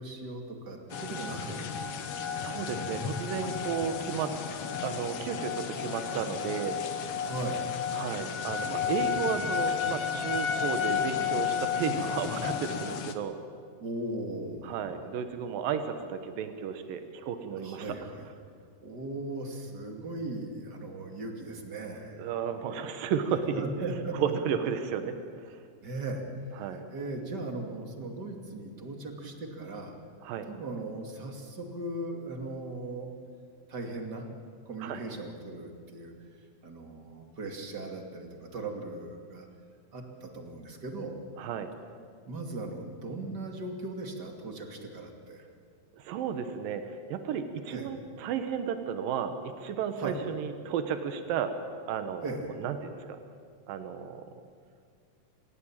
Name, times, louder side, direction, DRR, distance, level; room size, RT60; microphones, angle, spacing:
voice 1, 0.0-1.7 3.8-3.9 7.2-7.7 13.8-15.0 17.6-18.3 18.8-22.2 23.5-24.3 25.8-26.2 26.6-29.9 30.5-33.1 33.7-34.3 34.7-36.1 36.6-39.5 39.9-41.2 42.3-45.4 47.7-47.9 50.0-50.2 52.2-52.6, right 2 dB, 30° right, 3 dB, 2.8 m, -38 dB
sound 1, 0.9-13.1, left 7 dB, 60° left, 1.8 m, -32 dB
voice 2, 2.3-4.3 4.8-6.8 7.9-13.3 14.6-18.0 22.2-25.6 26.6-26.9 30.2-30.5 34.8-35.0 41.4-41.7 46.0-51.5 51.9-53.2 53.7-54.2, right 7 dB, 90° right, 8 dB, 2.9 m, -33 dB
27.5 x 16.5 x 8.9 m, 2.1 s
omnidirectional pair, 3.9 m